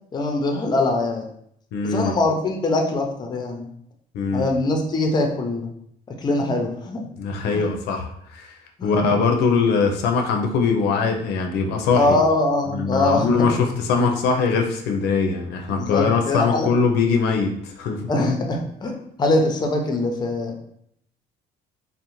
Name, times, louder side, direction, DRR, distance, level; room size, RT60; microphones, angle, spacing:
voice 1, 0.1-1.2 1.9-3.7 4.3-5.7 6.2-7.0 7.5-7.7 8.8-9.0 11.9-13.4 15.8-16.7 18.1-20.6, left 2 dB, 25° left, 3 dB, 0.5 m, -22 dB
voice 2, 1.7-2.1 4.1-4.5 7.2-8.5 8.8-12.2 12.7-18.0, left 5 dB, 85° left, 3 dB, 0.4 m, -21 dB
2.6 x 2.0 x 2.9 m, 0.69 s
cardioid pair, 110°, 17 cm